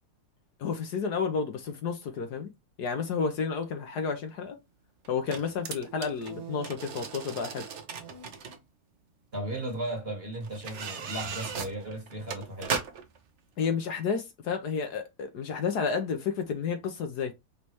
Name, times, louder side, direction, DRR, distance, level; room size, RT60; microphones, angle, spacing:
voice 1, 0.6-2.5 2.8-4.6 5.1-7.6 13.6-17.3, left 5 dB, 65° left, 1.3 m, -31 dB
sound 1, 3.6-3.7 5.0-8.6 9.5-9.6 10.4-13.2 13.6-13.7, right 6 dB, 50° right, 0.9 m, -37 dB
voice 2, 9.3-12.8, right 1 dB, 35° right, 1.5 m, -36 dB
5.3 x 3.3 x 3.0 m
omnidirectional pair, 2.0 m